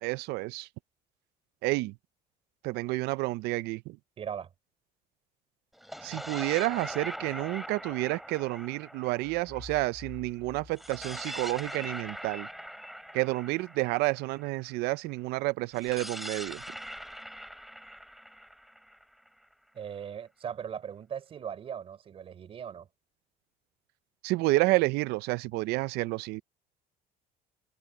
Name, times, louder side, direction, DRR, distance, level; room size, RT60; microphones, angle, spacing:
voice 1, 0.0-0.7 1.6-1.9 2.6-4.0 6.0-12.5 13.1-16.6 24.2-26.4, right 21 dB, 80° right, 0.5 m, -30 dB
voice 2, 4.2-4.5 19.7-22.9, right 8 dB, 35° right, 4.7 m, -39 dB
sound 1, 5.7-10.2 10.7-14.7 15.7-19.5, equal, ahead, 4.3 m, -42 dB
sound 2, 9.2-12.1, left 4 dB, 20° left, 4.6 m, -50 dB
cardioid pair, 160°, 16 cm